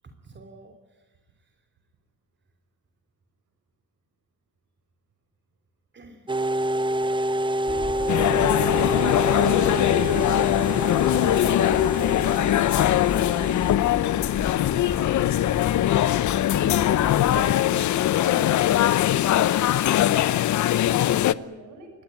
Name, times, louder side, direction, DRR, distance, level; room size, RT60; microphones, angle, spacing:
voice 1, 0.0-1.0 5.9-6.3 9.0-12.0, right 3 dB, 35° right, 6 dB, 3.1 m, -46 dB
sound 1, 6.3-13.7, right 1 dB, 15° right, 0.8 m, -28 dB
sound 2, 7.7-17.5, left 3 dB, 25° left, 5.7 m, -34 dB
sound 3, 8.1-21.3, left 13 dB, 70° left, 0.9 m, -21 dB
voice 2, 16.3-21.9, right 3 dB, 85° right, 5 dB, 7.0 m, -41 dB
25.0 x 19.5 x 9.5 m, 1.2 s
cardioid pair, 90°, 30 cm